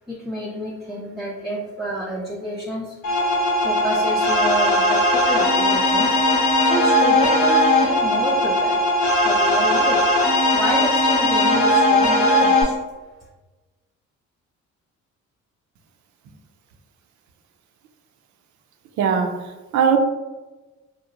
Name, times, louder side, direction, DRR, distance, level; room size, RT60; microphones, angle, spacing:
voice 1, 0.1-3.0 3.6-6.2 6.6-8.8 9.2-10.0 10.5-12.8, right 1 dB, ahead, -5 dB, 0.3 m, -29 dB
sound 1, 3.0-12.6, left 1 dB, 70° left, 0.7 m, -18 dB
voice 2, 19.0-20.0, right 7 dB, 70° right, 5 dB, 0.4 m, -20 dB
2.8 x 2.0 x 2.4 m, 1.2 s
cardioid pair, 90°, 30 cm